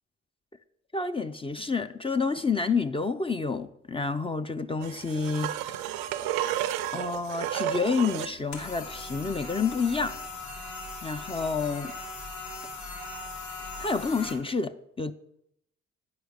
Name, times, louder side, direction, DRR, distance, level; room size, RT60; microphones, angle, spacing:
voice 1, 0.9-6.1 6.9-10.2 11.0-11.9 13.8-15.1, left 4 dB, 15° left, 0.5 m, -29 dB
sound 1, 4.8-8.4 11.3-11.4, right 11 dB, 85° right, 0.5 m, -32 dB
sound 2, 8.5-14.3, left 3 dB, 60° left, 2.8 m, -39 dB
9.5 x 4.8 x 6.4 m
supercardioid pair, 55°, 32 cm